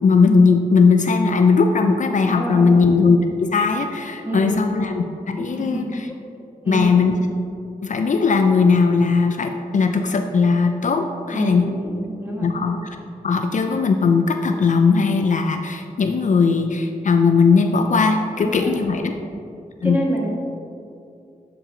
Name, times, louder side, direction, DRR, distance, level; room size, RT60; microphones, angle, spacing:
voice 1, 0.0-5.9 6.7-7.2 7.8-11.8 12.4-13.0 13.2-19.1 19.8-20.0, left 4 dB, 60° left, 5 dB, 0.4 m, -18 dB
voice 2, 2.3-2.8 4.2-4.6 5.5-5.9 6.6-7.0 11.3-12.5 18.4-18.8 19.2-19.3 19.8-20.3, right 1 dB, 15° right, -3 dB, 1.6 m, -27 dB
8.1 x 4.5 x 3.8 m, 2.5 s
wide cardioid pair, 85°, 15 cm